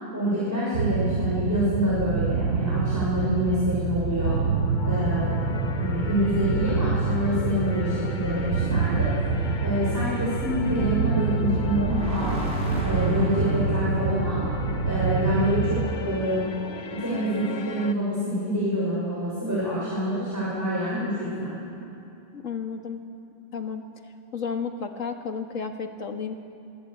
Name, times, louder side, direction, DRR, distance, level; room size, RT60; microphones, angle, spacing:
voice 1, 0.1-4.4 4.8-9.1 9.6-12.4 12.8-14.5 14.8-16.4 17.0-21.5, equal, 10° right, -8 dB, 6.7 m, -27 dB
sound 1, 0.7-15.9, right 4 dB, 90° right, 1.4 m, -26 dB
sound 2, 4.2-17.9, left 4 dB, 40° left, 0.9 m, -38 dB
sound 3, 11.5-16.1, left 1 dB, 75° right, 3.9 m, -34 dB
voice 2, 22.3-23.0 23.5-23.9 24.3-26.3, left 6 dB, 75° left, 5 dB, 2.0 m, -32 dB
26.5 x 18.0 x 8.6 m, 2.9 s
omnidirectional pair, 1.3 m